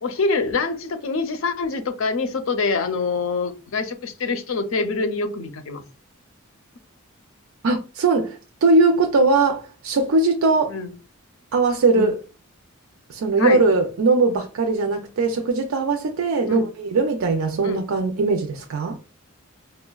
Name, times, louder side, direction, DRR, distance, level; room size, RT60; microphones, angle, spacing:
voice 1, 0.0-5.8 10.7-10.9 11.9-12.1 13.4-13.6 16.5-16.7 17.6-17.8, left 4 dB, 75° left, 0.5 m, -25 dB
voice 2, 7.6-10.8 11.5-12.1 13.1-19.0, right 3 dB, 90° right, 0.4 m, -20 dB
4.9 x 2.1 x 2.2 m
head